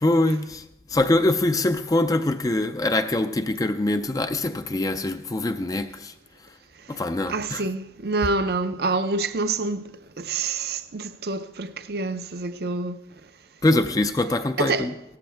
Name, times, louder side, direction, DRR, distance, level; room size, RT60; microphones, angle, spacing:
voice 1, 0.0-6.1 6.9-7.6 13.6-14.9, left 2 dB, 20° left, 0.4 m, -23 dB
voice 2, 7.3-9.9 10.2-13.0 14.6-14.9, right 3 dB, 60° right, 0.6 m, -27 dB
17.5 x 14.0 x 3.4 m
head